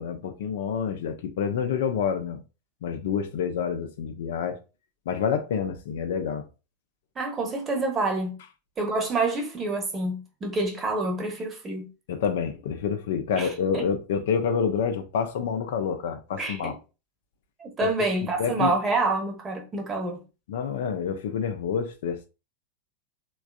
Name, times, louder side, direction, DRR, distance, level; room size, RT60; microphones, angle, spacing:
voice 1, 0.0-2.4 2.8-4.6 5.1-6.5 12.1-16.8 17.8-17.9 18.4-18.7 20.5-22.3, left 7 dB, 55° left, 0.4 m, -28 dB
voice 2, 7.2-8.4 8.8-11.9 13.4-13.5 13.7-13.8 16.4-16.7 17.6-20.2, right 2 dB, 20° right, 0.9 m, -27 dB
3.3 x 2.3 x 2.3 m
figure-of-eight pair, 90°, 0 cm